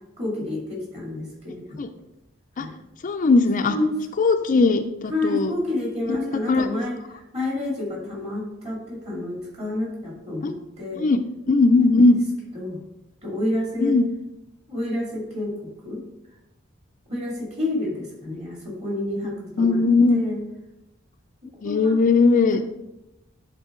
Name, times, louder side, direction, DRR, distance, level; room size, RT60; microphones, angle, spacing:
voice 1, 0.2-1.8 2.6-2.7 3.7-4.0 5.1-7.0 7.3-11.1 12.5-12.8 13.2-14.0 14.7-15.5 15.8-16.0 17.1-19.8 20.1-20.4 21.6-21.9 22.5-22.7, left 1 dB, 35° right, -3 dB, 2.4 m, -29 dB
voice 2, 3.0-3.8 4.2-5.5 6.2-6.7 10.4-10.5 11.0-11.2 11.5-12.2 13.8-14.1 19.6-20.2 21.6-22.6, left 3 dB, 40° left, 7 dB, 0.4 m, -19 dB
10.0 x 3.9 x 3.7 m, 0.92 s
head